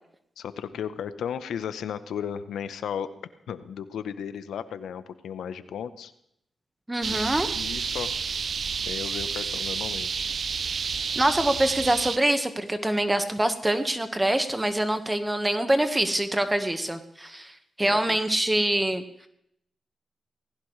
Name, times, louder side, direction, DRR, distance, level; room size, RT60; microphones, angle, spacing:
voice 1, 0.4-3.1 3.5-6.1 7.1-7.2 7.5-8.1 8.9-10.3 17.8-18.2, left 8 dB, 85° left, 12 dB, 0.8 m, -35 dB
voice 2, 6.9-7.5 11.1-19.3, right 1 dB, 15° right, 8 dB, 1.4 m, -25 dB
sound 1, 7.0-12.2, right 6 dB, 65° right, 0.4 m, -30 dB
19.0 x 16.5 x 3.2 m, 0.75 s
cardioid pair, 55°, 0 cm